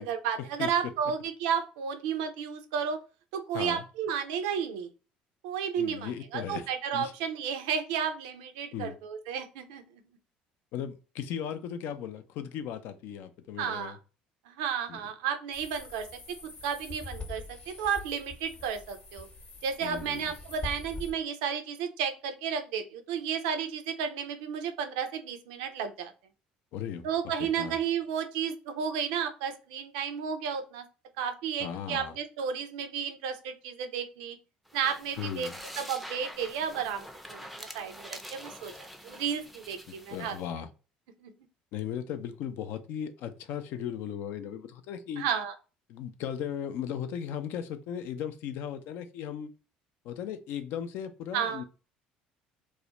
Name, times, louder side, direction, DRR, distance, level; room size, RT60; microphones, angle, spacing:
voice 1, 0.0-3.0 3.3-4.9 5.4-9.8 13.6-14.0 14.5-16.4 16.6-19.3 19.6-26.1 27.0-30.9 31.2-34.4 34.7-35.5 35.8-40.4 41.2-41.3 45.2-45.5 51.3-51.6, right 7 dB, 75° right, 8 dB, 0.4 m, -32 dB
voice 2, 3.5-3.8 5.8-6.7 6.9-7.1 8.7-9.0 10.7-14.0 14.9-15.0 19.8-20.3 26.7-27.1 27.4-27.8 31.6-32.2 35.2-35.6 39.9-40.7 41.7-45.2 45.9-49.5 50.0-51.6, left 9 dB, 65° left, 9 dB, 0.4 m, -37 dB
sound 1, 15.5-21.1, left 3 dB, 35° left, 0.8 m, -44 dB
sound 2, 34.7-40.4, equal, ahead, 0.4 m, -45 dB
2.3 x 2.1 x 2.8 m, 0.33 s
hypercardioid pair, 65°, 4 cm